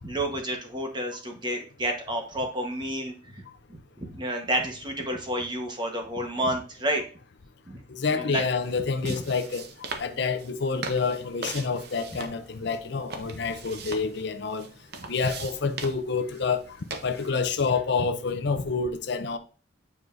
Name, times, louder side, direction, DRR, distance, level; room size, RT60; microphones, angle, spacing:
voice 1, 0.0-3.4 3.7-7.0 7.6-7.8 8.1-8.4 9.0-9.2, right 1 dB, 25° right, 1.2 m, -30 dB
voice 2, 7.9-9.6 10.0-14.7 15.0-16.6 17.0-19.4, left 4 dB, 60° left, 0.6 m, -28 dB
sound 1, 8.5-17.3, right 3 dB, 55° right, 0.8 m, -41 dB
8.9 x 4.7 x 2.6 m
head